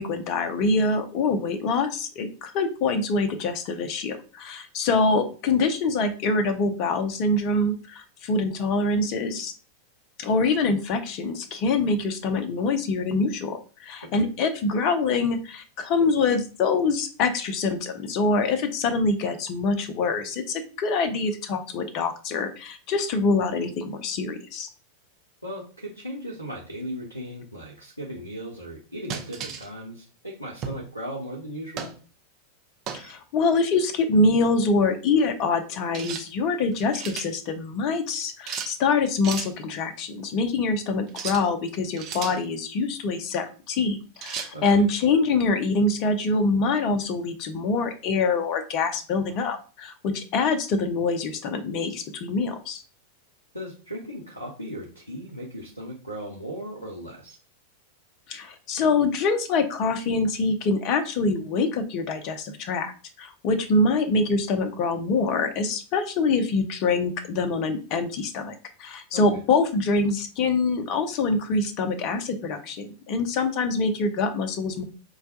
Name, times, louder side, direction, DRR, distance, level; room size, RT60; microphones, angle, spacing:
voice 1, 0.0-9.5 10.2-24.7 32.9-52.8 58.3-62.9 63.2-68.5 68.8-74.8, left 3 dB, 40° left, 8 dB, 0.6 m, -25 dB
voice 2, 25.4-31.9 44.5-44.8 53.5-57.4 69.1-69.2, equal, 90° left, -3 dB, 0.6 m, -37 dB
sound 1, 29.1-29.7 30.6-30.9 31.8-32.0 32.9-33.1 35.9-36.3 36.7-37.3 38.5-38.7 39.2-39.5 41.1-41.5 42.0-42.4 44.2-44.5, right 7 dB, 35° right, 0.5 m, -34 dB
4.6 x 2.2 x 2.7 m, 0.37 s
figure-of-eight pair, 90°, 0 cm